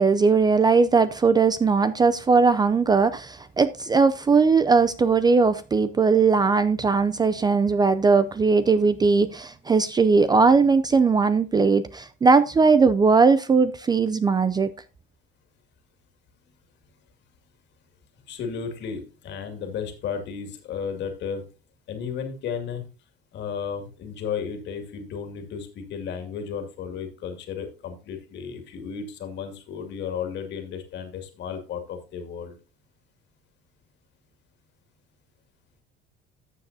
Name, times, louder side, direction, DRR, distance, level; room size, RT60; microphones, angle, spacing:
voice 1, 0.0-14.7, right 4 dB, 20° right, 0.4 m, -19 dB
voice 2, 18.3-21.5 21.9-22.8 23.3-32.6, left 6 dB, 60° left, 2.3 m, -33 dB
13.5 x 7.2 x 2.7 m
cardioid pair, 120°, 21 cm